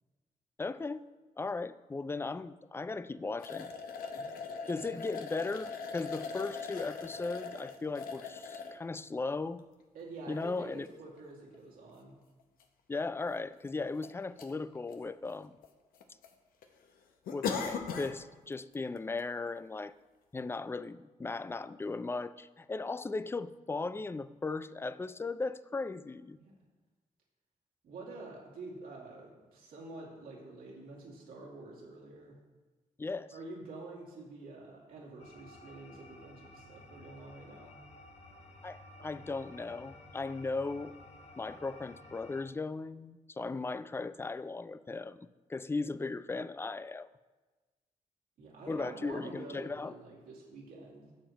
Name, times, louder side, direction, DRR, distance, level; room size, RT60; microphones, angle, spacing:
voice 1, 0.6-1.0 1.4-3.7 4.7-9.6 10.3-10.9 12.9-15.6 17.3-19.9 20.3-26.4 33.0-33.3 38.6-40.9 41.4-47.1 48.7-50.0, left 3 dB, 15° left, 15 dB, 0.3 m, -37 dB
sound 1, 3.4-8.8 9.5-9.6 11.2-11.3 11.5-11.6 12.6-12.7 12.9-13.0 13.7-14.1 14.4-14.5 14.9-15.7 15.9-16.3 16.6-16.7 17.3-18.2 18.5-18.7 19.2-19.3, left 5 dB, 90° left, 0.8 m, -39 dB
voice 2, 9.9-12.2 26.4-26.5 27.8-32.3 33.3-37.7 48.4-51.1, right 2 dB, 85° right, -3 dB, 2.3 m, -48 dB
sound 2, 35.2-42.4, left 2 dB, 50° left, 1.1 m, -54 dB
11.5 x 7.1 x 3.0 m, 1.3 s
cardioid pair, 65°, 15 cm